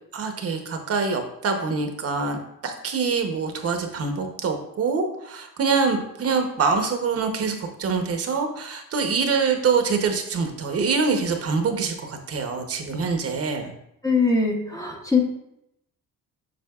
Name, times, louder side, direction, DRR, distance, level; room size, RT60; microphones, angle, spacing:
voice 1, 0.1-2.4 2.6-13.8, right 5 dB, 45° right, 5 dB, 0.8 m, -25 dB
voice 2, 14.0-15.2, left 4 dB, 10° left, 1 dB, 0.7 m, -21 dB
7.7 x 6.1 x 2.3 m, 0.79 s
cardioid pair, 150°, 34 cm